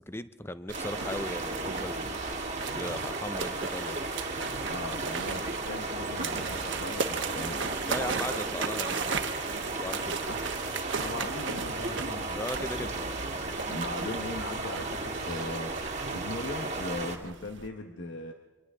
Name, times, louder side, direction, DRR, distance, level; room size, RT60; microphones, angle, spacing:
voice 1, 0.0-2.2 2.7-4.0 7.9-9.3 9.7-10.2 12.4-13.0, left 1 dB, 10° left, 12 dB, 0.6 m, -37 dB
sound 1, 0.7-17.2, right 2 dB, 35° right, 1.9 m, -35 dB
sound 2, 0.7-17.7, right 5 dB, 65° right, 1.2 m, -37 dB
sound 3, 0.9-17.3, right 2 dB, 85° right, 0.9 m, -46 dB
voice 2, 4.7-7.7 10.0-10.4 11.0-12.4 13.7-15.7 16.1-18.3, left 2 dB, 65° left, 3 dB, 1.3 m, -39 dB
28.5 x 24.5 x 3.8 m, 1.2 s
head